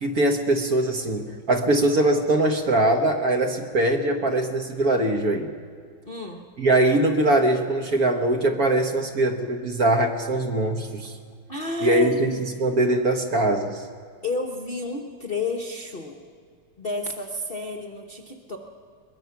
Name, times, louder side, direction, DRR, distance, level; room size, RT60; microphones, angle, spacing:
voice 1, 0.0-5.5 6.6-11.2 11.8-13.8, right 1 dB, 45° right, 4 dB, 1.6 m, -22 dB
voice 2, 6.0-6.4 11.5-12.4 14.2-16.2 16.8-18.6, left 2 dB, 35° left, 2 dB, 1.1 m, -31 dB
22.5 x 21.5 x 5.9 m, 2.1 s
omnidirectional pair, 2.4 m